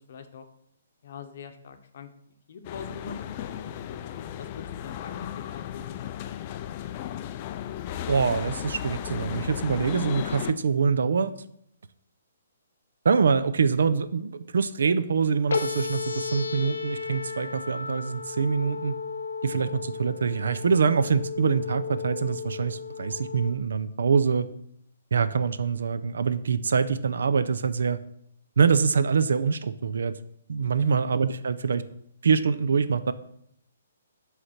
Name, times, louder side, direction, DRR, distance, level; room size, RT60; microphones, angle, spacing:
voice 1, 0.1-0.4 1.0-2.1 2.5-6.8 30.8-31.1, left 6 dB, 50° left, 7 dB, 0.8 m, -43 dB
sound 1, 2.6-10.5, left 10 dB, 30° left, 0.3 m, -35 dB
voice 2, 8.1-11.3 13.0-19.0 19.4-24.5 25.1-28.0 28.6-30.2 30.5-31.8 32.2-33.1, right 5 dB, 80° right, 13 dB, 0.5 m, -24 dB
sound 2, 15.5-23.5, left 5 dB, 90° left, 0.8 m, -34 dB
7.8 x 3.3 x 5.7 m, 0.71 s
hypercardioid pair, 165°, 0 cm